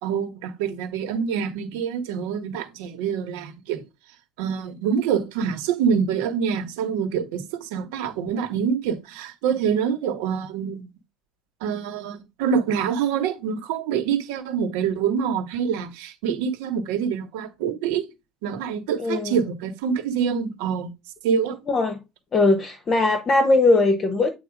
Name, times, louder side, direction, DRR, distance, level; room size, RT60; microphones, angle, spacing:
voice 1, 0.0-3.8 4.4-10.9 11.6-18.1 18.4-20.9 21.2-21.6, right 7 dB, 85° right, 1.8 m, -26 dB
voice 2, 19.0-19.4 21.7-22.0 22.3-24.3, left 2 dB, 25° left, 0.9 m, -20 dB
8.7 x 3.0 x 5.0 m
cardioid pair, 170°, 0 cm